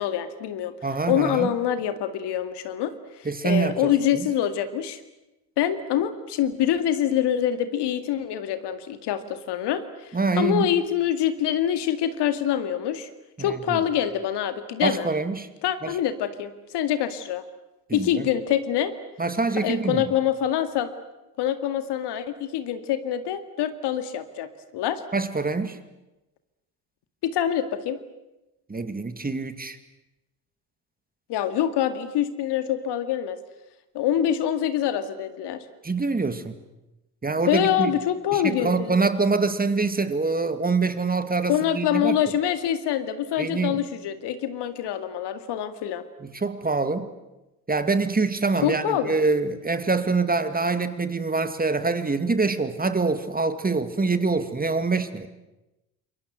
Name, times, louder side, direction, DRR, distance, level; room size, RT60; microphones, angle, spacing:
voice 1, 0.0-0.7 1.1-5.0 5.6-13.1 13.4-15.1 15.6-17.4 17.9-18.9 19.6-20.9 21.4-24.5 24.7-25.0 27.2-28.0 31.3-33.4 33.9-35.6 37.5-38.9 41.5-46.0 48.6-49.1, left 10 dB, 60° left, 10 dB, 2.1 m, -25 dB
voice 2, 0.8-1.5 3.3-4.3 10.1-10.7 13.4-13.8 14.8-15.5 15.8-15.9 17.9-18.3 19.2-20.1 25.1-25.8 28.7-29.8 35.8-36.6 37.2-37.9 38.3-42.2 43.4-43.8 46.2-47.1 47.7-55.3, right 4 dB, 20° right, 10 dB, 2.3 m, -25 dB
27.5 x 22.5 x 8.0 m, 0.98 s
hypercardioid pair, 55°, 46 cm